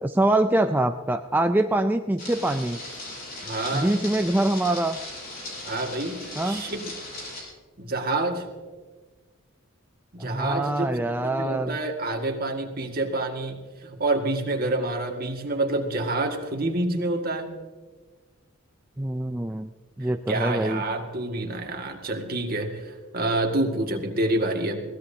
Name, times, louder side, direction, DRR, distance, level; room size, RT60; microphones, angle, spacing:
voice 1, 0.0-2.8 3.7-5.0 6.4-6.6 10.2-11.8 19.0-19.7 20.0-20.8, right 1 dB, 10° right, 6 dB, 0.4 m, -24 dB
sound 1, 2.2-7.4, left 2 dB, 45° left, 5.9 m, -38 dB
voice 2, 3.4-4.0 5.6-6.9 7.8-8.5 10.1-17.6 20.3-24.8, right 2 dB, 45° right, 3 dB, 2.0 m, -28 dB
22.5 x 16.5 x 2.8 m, 1.4 s
head